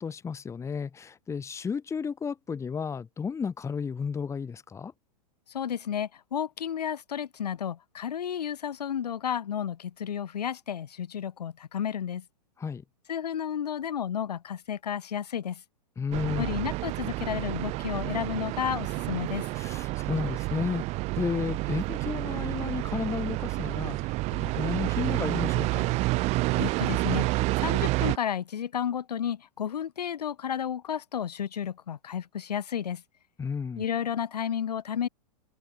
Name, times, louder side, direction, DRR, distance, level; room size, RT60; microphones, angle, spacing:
voice 1, 0.0-4.9 12.6-12.8 16.0-16.5 19.5-25.9 33.4-33.8, left 6 dB, 15° left, 1.5 m, -33 dB
voice 2, 5.5-12.2 13.1-15.6 16.4-19.5 26.6-33.0 33.8-35.1, left 9 dB, 75° left, 2.1 m, -32 dB
sound 1, 16.1-28.2, right 21 dB, 30° right, 0.7 m, -29 dB
hypercardioid pair, 110°, 21 cm